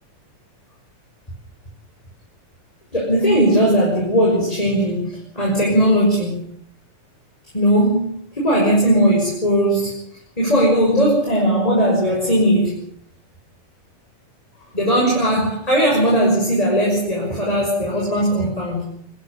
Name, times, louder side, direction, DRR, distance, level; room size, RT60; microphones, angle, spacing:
voice 1, 2.9-6.5 7.5-9.9 10.4-12.8 14.7-19.0, equal, 10° left, -3 dB, 6.5 m, -18 dB
25.0 x 15.0 x 8.1 m, 0.67 s
omnidirectional pair, 3.4 m